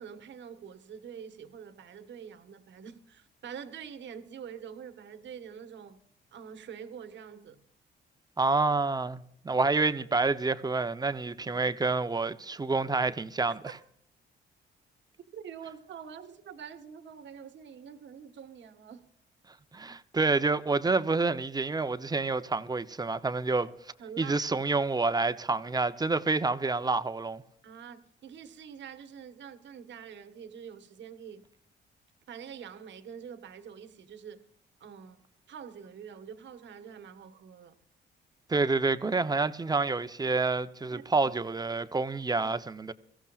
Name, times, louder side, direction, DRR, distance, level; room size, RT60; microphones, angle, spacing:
voice 1, 0.0-6.0 6.3-7.6 15.3-19.1 24.0-24.4 27.6-31.5 32.3-34.5 34.8-37.7 40.9-41.3, right 7 dB, 65° right, 1.4 m, -46 dB
voice 2, 8.4-13.6 19.7-23.7 24.2-27.4 38.5-42.9, right 3 dB, 20° right, 0.8 m, -28 dB
23.5 x 15.0 x 2.5 m
cardioid pair, 90°, 20 cm